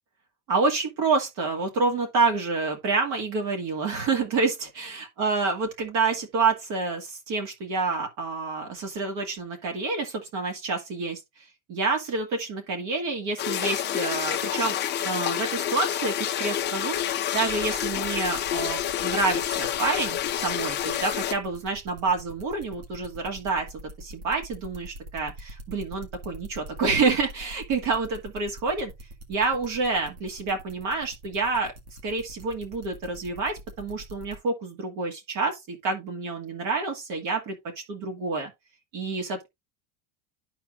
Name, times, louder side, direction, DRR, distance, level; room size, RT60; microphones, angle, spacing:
voice 1, 0.5-11.2 11.7-14.8 15.0-17.0 17.3-23.7 24.0-28.9 29.3-31.7 32.0-37.6 37.9-38.5 38.9-39.5, right 4 dB, 55° right, 2.0 m, -28 dB
sound 1, 13.4-21.3, left 11 dB, 25° left, 0.6 m, -28 dB
sound 2, 17.5-34.4, right 1 dB, 80° right, 2.1 m, -44 dB
12.5 x 4.3 x 2.4 m
cardioid pair, 155°, 40 cm